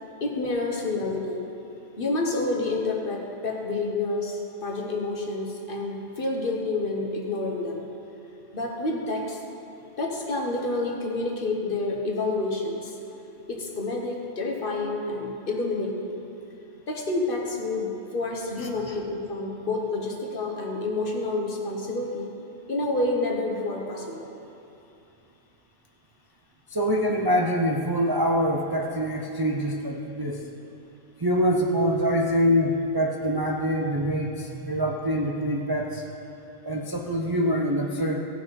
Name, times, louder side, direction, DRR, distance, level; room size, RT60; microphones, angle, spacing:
voice 1, 0.2-1.4 2.0-7.9 8.5-9.4 10.0-12.9 13.5-16.2 16.9-22.3 22.7-24.3, left 2 dB, 50° left, 0 dB, 1.3 m, -29 dB
voice 2, 18.6-19.0 26.7-30.4 31.2-36.0 36.6-38.2, equal, 25° right, 0 dB, 0.5 m, -25 dB
16.5 x 6.1 x 5.3 m, 2.8 s
omnidirectional pair, 1.2 m